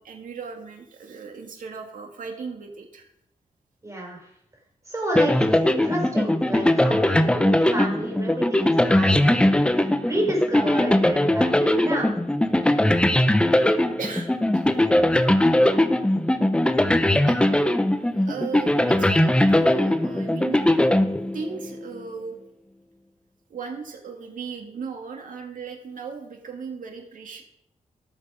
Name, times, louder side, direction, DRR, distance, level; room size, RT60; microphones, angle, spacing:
voice 1, 0.0-3.1 14.0-14.9 17.3-17.4 18.2-20.7 21.3-22.4 23.5-27.4, right 5 dB, 85° right, 3 dB, 2.2 m, -37 dB
voice 2, 3.8-4.3 4.8-12.1, right 1 dB, 25° right, -1 dB, 4.8 m, -30 dB
sound 1, 5.2-21.7, left 1 dB, 10° left, 0.8 m, -20 dB
17.0 x 6.8 x 5.0 m, 0.77 s
wide cardioid pair, 100°, 13 cm